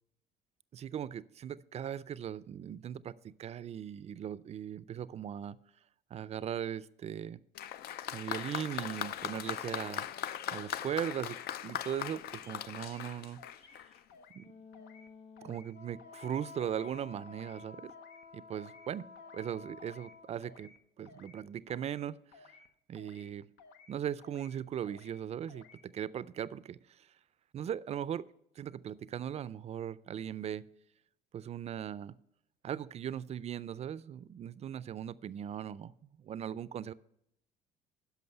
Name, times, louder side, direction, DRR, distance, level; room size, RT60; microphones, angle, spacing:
voice 1, 0.7-5.6 6.1-7.4 8.1-10.1 10.5-11.4 11.6-13.4 14.3-14.5 15.4-17.9 18.3-19.1 19.3-22.5 22.9-23.5 23.9-26.8 27.5-28.2 28.6-30.7 31.3-32.2 32.6-35.9 36.2-36.9, right 9 dB, 40° right, 18 dB, 0.4 m, -39 dB
Applause, 7.5-14.0, left 11 dB, 70° left, 0.5 m, -39 dB
sound 1, 11.8-12.0 12.3-13.1 13.4-13.8 14.1-14.5 14.7-15.1 15.4-15.7 16.0-16.3 16.6-17.0 17.3-17.6 17.9-18.2 18.5-18.9 19.1-19.5 19.8-20.1 20.4-20.8 21.0-21.4 21.7-22.0 22.3-22.7 22.9-23.3 23.6-23.9 24.2-24.6 24.8-25.2 25.5-25.8, left 5 dB, 85° left, 0.8 m, -57 dB
Wind instrument woodwind instrument, 14.3-20.6, left 5 dB, 40° left, 0.8 m, -52 dB
11.0 x 6.0 x 5.7 m, 0.78 s
cardioid pair, 110°, 17 cm